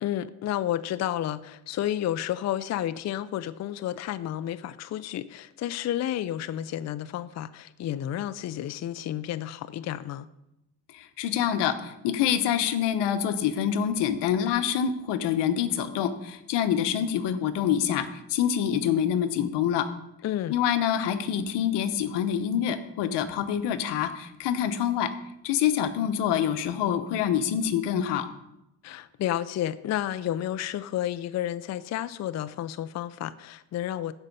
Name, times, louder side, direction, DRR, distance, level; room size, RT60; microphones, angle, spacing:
voice 1, 0.0-10.3 20.2-20.6 28.8-34.1, left 12 dB, 40° left, 13 dB, 0.5 m, -31 dB
voice 2, 10.9-19.9 20.5-25.1 25.4-28.3, left 9 dB, 80° left, 10 dB, 1.1 m, -26 dB
15.0 x 5.5 x 5.4 m, 0.87 s
cardioid pair, 110°, 41 cm